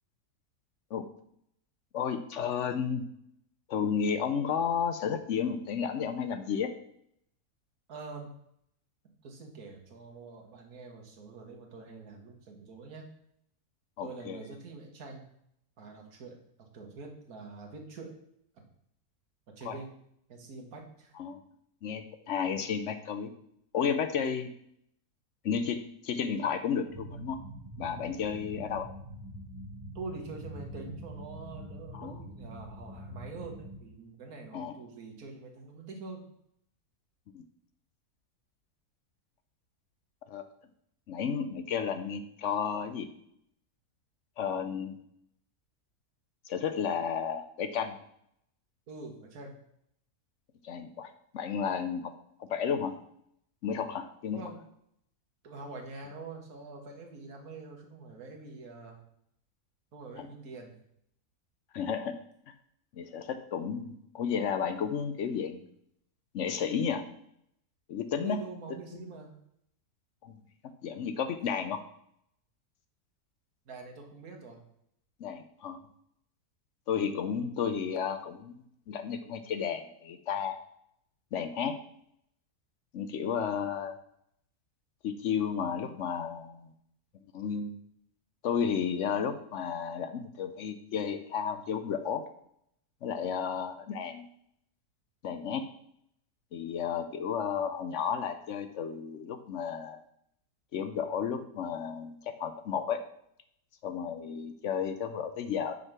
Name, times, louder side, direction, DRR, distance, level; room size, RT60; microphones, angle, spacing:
voice 1, 1.9-3.0 3.7-6.7 14.0-14.4 19.6-19.8 21.2-21.4 21.8-23.3 23.7-24.5 25.4-27.4 27.8-28.9 31.9-32.1 34.5-34.7 37.3-37.4 40.3-40.4 41.1-43.1 44.4-45.0 46.4-47.9 50.6-51.1 51.3-52.1 52.4-52.9 53.6-54.4 60.2-60.3 61.7-62.1 62.9-65.6 66.3-67.0 67.9-68.4 68.9-69.1 70.2-70.4 70.8-71.8 75.2-75.8 76.9-80.6 81.3-81.7 82.9-84.0 85.0-86.7 87.3-87.7 88.4-92.2 93.0-94.3 95.2-95.6 96.5-100.0 100.7-103.0 103.8-105.8, left 7 dB, 65° left, 9 dB, 0.8 m, -32 dB
voice 2, 7.9-8.3 9.2-13.1 14.0-15.3 15.8-18.2 19.5-19.9 20.3-21.2 30.0-36.3 48.9-49.5 54.3-54.6 55.4-59.0 59.9-60.7 68.2-69.4 73.7-74.6, right 4 dB, 70° right, 2 dB, 1.8 m, -45 dB
sound 1, 26.9-33.8, right 1 dB, 20° right, 2.6 m, -44 dB
5.9 x 5.4 x 5.9 m, 0.73 s
omnidirectional pair, 1.6 m